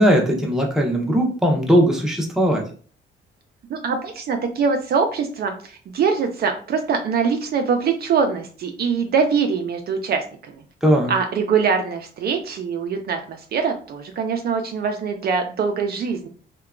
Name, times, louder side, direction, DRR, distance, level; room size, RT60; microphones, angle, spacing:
voice 1, 0.0-2.6 10.8-11.1, equal, ahead, 0 dB, 0.6 m, -18 dB
voice 2, 3.7-10.6 11.1-16.3, right 5 dB, 55° right, 4 dB, 0.4 m, -23 dB
2.8 x 2.2 x 2.3 m, 0.42 s
cardioid pair, 90°, 20 cm